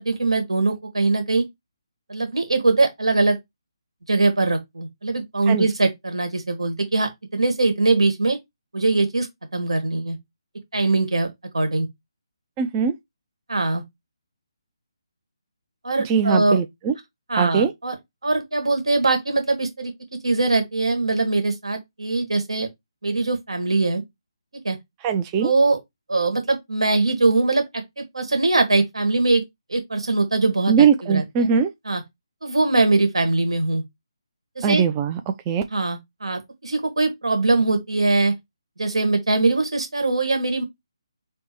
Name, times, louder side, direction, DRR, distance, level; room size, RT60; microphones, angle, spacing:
voice 1, 0.0-1.4 2.1-3.4 4.1-8.4 8.7-9.3 9.5-10.2 10.7-11.3 11.5-11.9 13.5-13.8 15.8-16.6 17.3-17.9 18.2-19.9 20.2-22.7 23.0-24.0 24.6-24.8 25.4-25.8 26.1-29.4 29.7-31.5 31.8-32.0 32.4-33.8 34.6-34.8 35.7-38.3 38.8-40.6, right 3 dB, 85° right, 1.4 m, -22 dB
voice 2, 12.6-12.9 16.0-16.9 17.4-17.7 25.0-25.5 30.7-31.7 34.6-35.2 35.5-35.6, right 7 dB, 20° right, 0.3 m, -20 dB
3.5 x 2.0 x 4.3 m
figure-of-eight pair, 155°, 3 cm